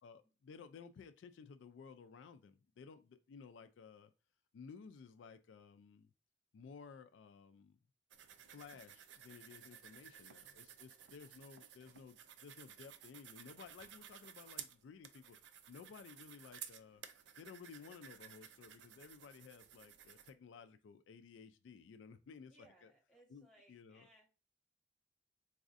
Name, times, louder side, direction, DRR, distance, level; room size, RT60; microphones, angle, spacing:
voice 1, 0.0-4.1 4.5-6.1 6.5-7.8 8.5-15.4 15.7-17.0 17.4-22.5 22.8-22.9 23.3-24.1, left 5 dB, 80° left, 0.3 m, -56 dB
sound 1, 8.1-20.3, right 9 dB, 70° right, 0.4 m, -55 dB
voice 2, 22.4-24.3, right 1 dB, 5° left, 0.9 m, -66 dB
4.0 x 2.4 x 2.6 m
head